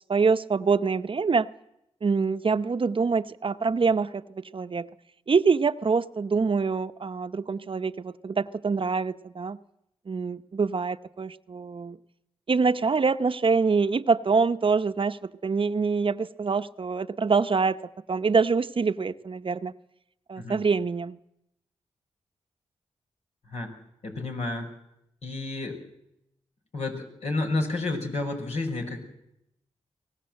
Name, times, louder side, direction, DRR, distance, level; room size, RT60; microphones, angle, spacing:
voice 1, 0.1-1.5 2.0-4.9 5.3-9.6 10.1-12.0 12.5-17.8 18.1-19.7 20.3-21.2, right 5 dB, 50° right, 0.9 m, -25 dB
voice 2, 24.0-24.7 25.2-25.8 26.7-29.0, left 2 dB, 70° left, 5.9 m, -30 dB
24.0 x 18.5 x 7.8 m
supercardioid pair, 45°, 12 cm